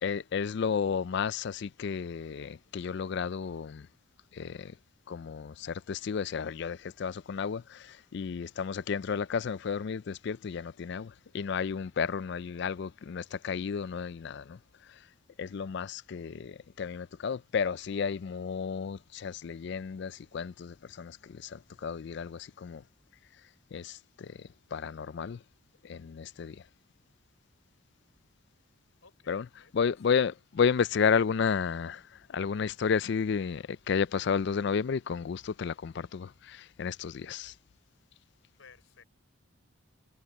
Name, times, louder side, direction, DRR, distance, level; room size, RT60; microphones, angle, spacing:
voice 1, 0.0-3.9 4.3-4.7 5.1-14.6 15.4-22.8 23.7-25.4 25.8-26.6 29.3-29.5 29.7-32.0 32.3-37.5, left 6 dB, 55° left, 0.4 m, -32 dB
voice 2, 29.0-30.2 38.6-39.0, left 5 dB, 75° left, 4.2 m, -58 dB
head